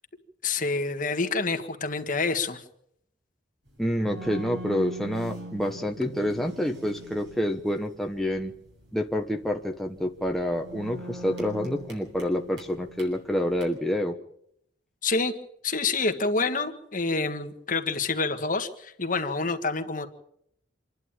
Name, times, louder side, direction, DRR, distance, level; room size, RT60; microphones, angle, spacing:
voice 1, 0.4-2.6 15.0-15.3 15.6-20.1, left 3 dB, 45° left, 5 dB, 1.7 m, -27 dB
sound 1, 3.7-13.6, right 1 dB, 70° right, 6.9 m, -43 dB
voice 2, 3.8-8.5 8.9-14.2, equal, ahead, 2 dB, 1.2 m, -28 dB
27.0 x 11.5 x 8.9 m, 0.74 s
head